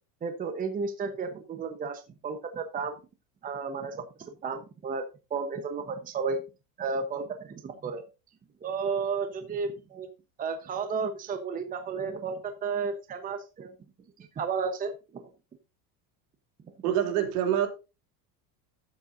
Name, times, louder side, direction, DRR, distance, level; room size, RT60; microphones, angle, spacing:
voice 1, 0.2-3.0 3.4-5.0 5.3-6.4 6.8-8.0 8.6-10.1 10.4-13.7 14.2-15.3, right 5 dB, 20° right, 1.0 m, -33 dB
voice 2, 16.8-17.7, right 10 dB, 70° right, 3.1 m, -25 dB
13.5 x 7.5 x 2.6 m
supercardioid pair, 150°, 46 cm